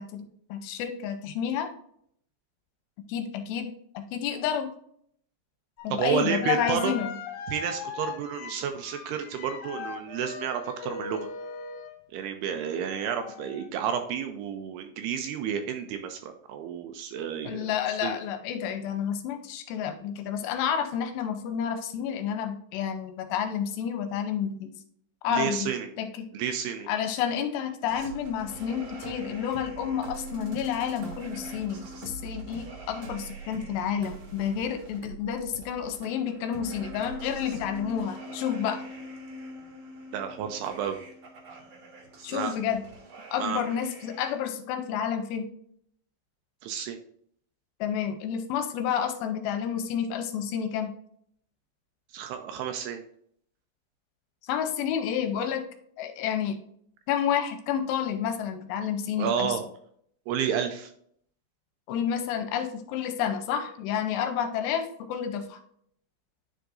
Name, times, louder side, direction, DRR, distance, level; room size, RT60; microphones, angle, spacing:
voice 1, 0.0-1.7 3.1-3.7 3.9-4.7 5.8-7.2 17.5-24.7 25.2-25.7 26.0-26.1 26.9-38.8 42.2-42.9 43.3-45.5 47.8-50.9 54.4-55.6 56.0-56.6 57.1-59.6 61.9-65.6, left 8 dB, 85° left, 7 dB, 2.8 m, -30 dB
sound 1, 5.8-5.9 6.4-12.0 12.8-13.7, left 5 dB, 70° left, 2.5 m, -39 dB
voice 2, 5.9-6.9 7.5-11.3 12.1-17.7 18.0-18.2 25.3-25.9 26.3-26.9 40.1-41.0 42.3-42.5 43.4-43.6 46.6-47.0 52.1-53.0 59.2-59.6 60.3-60.9, right 8 dB, 80° right, 6 dB, 2.5 m, -31 dB
sound 2, 27.9-44.3, right 1 dB, 60° right, 1.8 m, -42 dB
10.0 x 4.7 x 2.5 m, 0.65 s
omnidirectional pair, 5.1 m